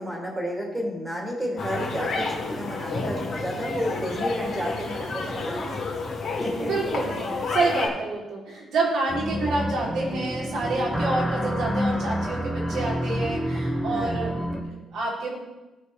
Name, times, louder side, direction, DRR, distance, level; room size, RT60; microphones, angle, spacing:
voice 1, 0.0-5.9 6.4-6.7 13.9-14.4, equal, 15° right, -1 dB, 3.3 m, -31 dB
sound 1, 1.6-7.9, left 3 dB, 55° left, 2.3 m, -30 dB
voice 2, 6.6-15.3, right 3 dB, 75° right, -5 dB, 3.3 m, -28 dB
sound 2, 9.1-14.6, equal, ahead, 1.3 m, -28 dB
15.5 x 5.3 x 3.4 m, 1.1 s
cardioid pair, 90°, 0 cm